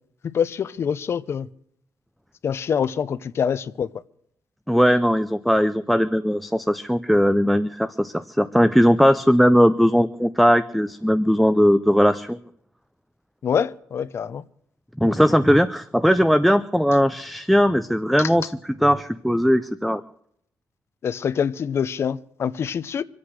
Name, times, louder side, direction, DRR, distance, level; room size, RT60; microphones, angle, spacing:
voice 1, 0.3-1.5 2.4-3.9 13.4-14.4 21.0-23.0, left 7 dB, 45° left, 0.8 m, -25 dB
voice 2, 4.7-12.4 15.0-20.0, equal, ahead, 0.5 m, -19 dB
25.5 x 8.6 x 6.4 m
cardioid pair, 150°, 6 cm